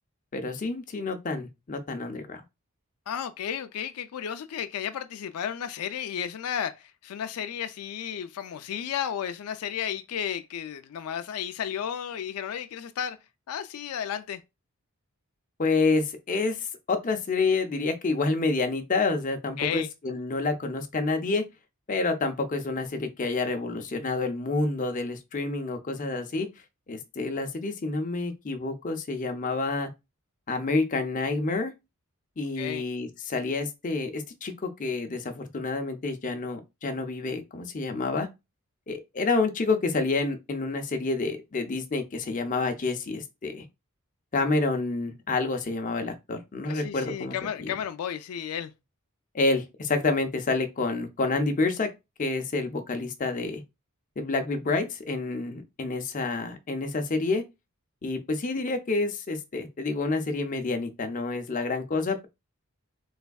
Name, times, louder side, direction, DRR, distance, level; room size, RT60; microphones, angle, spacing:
voice 1, 0.3-2.4 15.6-21.4 21.9-26.5 26.9-29.9 30.5-31.7 32.4-38.3 38.9-43.6 44.3-47.7 49.3-51.9 52.2-53.6 54.2-57.4 58.0-62.3, left 3 dB, 35° left, 0.5 m, -28 dB
voice 2, 3.1-13.2 13.5-14.4 19.6-19.9 32.6-32.9 46.7-48.7, left 9 dB, 90° left, 0.4 m, -33 dB
3.4 x 3.2 x 2.3 m
head